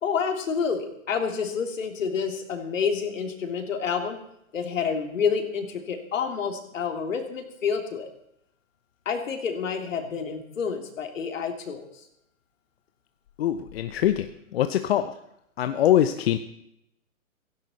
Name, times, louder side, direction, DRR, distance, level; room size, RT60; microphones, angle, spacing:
voice 1, 0.0-4.2 4.5-8.1 9.0-11.8, left 6 dB, 70° left, 4 dB, 3.2 m, -28 dB
voice 2, 13.4-15.2 15.6-16.4, left 11 dB, 50° left, 9 dB, 0.9 m, -23 dB
17.0 x 16.0 x 4.2 m, 0.78 s
hypercardioid pair, 135°, 40 cm